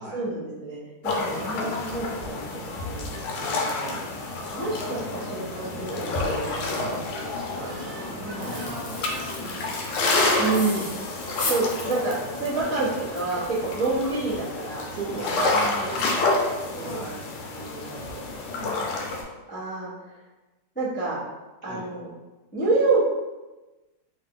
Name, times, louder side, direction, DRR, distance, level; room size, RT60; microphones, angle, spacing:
voice 1, 0.1-2.4 2.8-3.7 4.4-6.8 7.4-8.9 10.4-10.9 11.5-15.5 15.7-16.2 16.6-17.1 17.5-18.2 19.5-20.2 20.7-21.2 21.6-22.1 22.5-23.0, right 3 dB, 10° left, -11 dB, 0.4 m, -29 dB
sound 1, 1.0-19.2, left 2 dB, 85° left, 1.5 m, -29 dB
voice 2, 3.7-4.1 6.7-7.0 8.4-9.6 10.1-10.4 14.9-16.3 16.8-17.2 18.5-18.9 21.6-21.8, right 2 dB, 55° right, -7 dB, 1.4 m, -38 dB
Crying sobbing / Screech, 7.6-9.8 11.7-12.0 12.6-13.6, right 3 dB, 85° right, 1.5 m, -47 dB
sound 2, 8.4-16.2 16.5-16.6 17.1-17.3 17.6-17.8, left 2 dB, 65° left, 1.2 m, -38 dB
3.7 x 2.4 x 3.7 m, 1.1 s
omnidirectional pair, 2.4 m